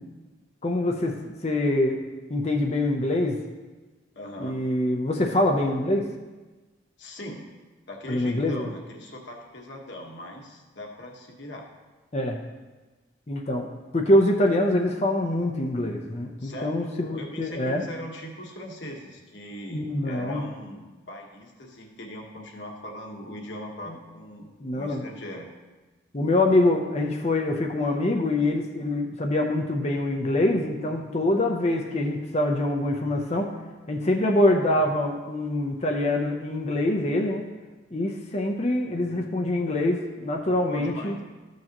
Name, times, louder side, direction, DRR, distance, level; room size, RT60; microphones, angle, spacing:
voice 1, 0.6-2.0 2.3-3.4 4.4-6.1 8.1-8.7 12.1-12.4 13.3-17.8 19.7-20.4 23.9-24.0 24.6-25.0 26.1-33.5 33.9-37.4 37.9-41.1, left 1 dB, 30° left, 2 dB, 0.7 m, -24 dB
voice 2, 4.1-4.6 7.0-7.4 7.9-11.7 16.4-24.4 24.7-25.5 40.7-41.2, left 1 dB, 60° left, 1 dB, 1.4 m, -40 dB
13.5 x 6.5 x 3.0 m, 1.2 s
head